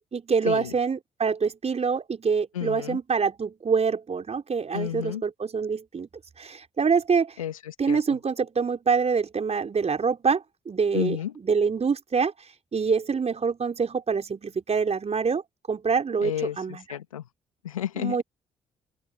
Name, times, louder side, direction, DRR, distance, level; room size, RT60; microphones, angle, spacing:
voice 1, 0.1-6.1 6.4-7.4 7.8-12.3 12.7-15.4 15.7-16.9 18.0-18.2, right 5 dB, 40° right, 4.6 m, -25 dB
voice 2, 2.5-3.0 4.7-5.2 7.4-8.0 10.9-11.3 16.2-17.2 17.6-18.2, left 11 dB, 85° left, 2.3 m, -31 dB
open air
figure-of-eight pair, 40°, 17 cm